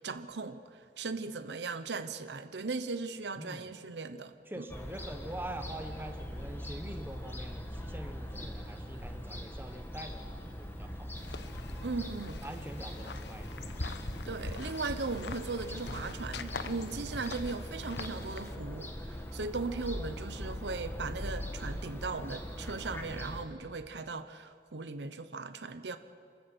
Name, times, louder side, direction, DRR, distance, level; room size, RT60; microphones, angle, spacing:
voice 1, 0.0-4.6 11.8-12.4 14.3-26.0, right 3 dB, 75° right, 10 dB, 0.9 m, -38 dB
voice 2, 3.4-3.7 4.5-11.1 12.4-13.9 19.7-19.8, right 1 dB, 10° right, 6 dB, 1.3 m, -44 dB
Fowl / Gull seagull, 4.7-23.4, equal, 15° left, 1.8 m, -41 dB
sound 1, 11.2-18.6, left 3 dB, 75° left, 1.0 m, -43 dB
29.0 x 13.5 x 7.9 m, 2.4 s
head